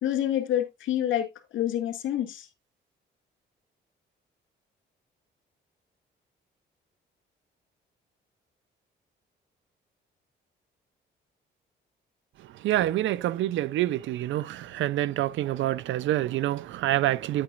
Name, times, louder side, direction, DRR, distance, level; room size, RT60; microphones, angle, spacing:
voice 1, 0.0-2.5, left 11 dB, 75° left, 2.2 m, -28 dB
voice 2, 12.6-17.4, right 14 dB, 75° right, 0.5 m, -27 dB
9.9 x 8.8 x 2.5 m
cardioid pair, 90°, 20 cm